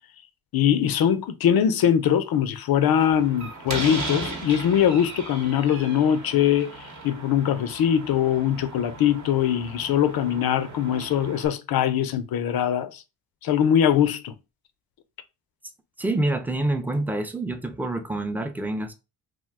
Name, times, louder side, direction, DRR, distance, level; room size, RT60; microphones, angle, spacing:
voice 1, 0.5-6.7 7.0-13.0 13.4-14.3, left 9 dB, 55° left, 0.5 m, -22 dB
Slam, 2.9-11.5, right 2 dB, 40° right, 0.9 m, -37 dB
voice 2, 16.0-18.9, right 2 dB, 5° right, 0.5 m, -27 dB
2.5 x 2.1 x 3.5 m
supercardioid pair, 55°, 44 cm